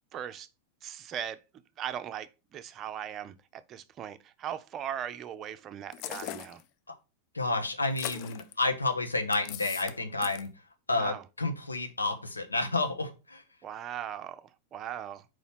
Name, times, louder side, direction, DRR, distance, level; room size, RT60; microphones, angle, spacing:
voice 1, 0.1-0.5 0.8-1.4 1.8-6.6 10.9-11.2 13.6-15.2, right 10 dB, 30° right, 0.5 m, -39 dB
sound 1, 5.9-6.6 7.8-8.5 9.3-10.0 10.2-10.5, left 12 dB, 45° left, 0.4 m, -39 dB
voice 2, 7.3-10.5 10.9-13.4, left 2 dB, 80° left, 1.0 m, -30 dB
4.8 x 4.1 x 5.6 m
figure-of-eight pair, 90°, 0 cm